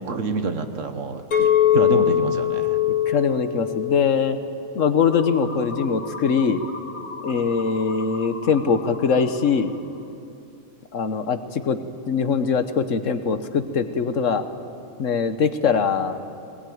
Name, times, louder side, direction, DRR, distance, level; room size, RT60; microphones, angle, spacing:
voice 1, 0.0-1.5 1.7-2.8 7.3-7.5, right 4 dB, 60° right, 8 dB, 1.6 m, -28 dB
Chink clink, 1.3-5.6 6.1-6.5, left 11 dB, 80° left, 2.3 m, -23 dB
voice 2, 3.1-4.4 4.7-6.6 7.2-9.7 10.9-11.8 12.1-14.4 15.0-16.2, left 6 dB, 65° left, 10 dB, 1.3 m, -22 dB
sound 1, 5.1-10.1, left 3 dB, 35° left, 2.0 m, -38 dB
20.0 x 19.0 x 9.3 m, 2.6 s
omnidirectional pair, 1.5 m